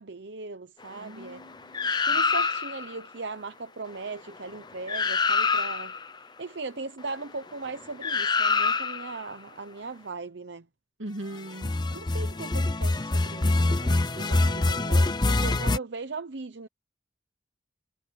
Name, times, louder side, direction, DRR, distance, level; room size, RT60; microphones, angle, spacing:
voice 1, 0.0-1.4 2.0-10.7 11.9-16.7, right 3 dB, 65° right, 0.8 m, -39 dB
voice 2, 0.9-1.9 11.0-11.7, right 1 dB, 90° right, 2.0 m, -39 dB
sound 1, 1.7-2.9 4.5-4.6 4.9-6.0 8.0-9.2 11.5-15.8, left 3 dB, 20° left, 0.6 m, -25 dB
head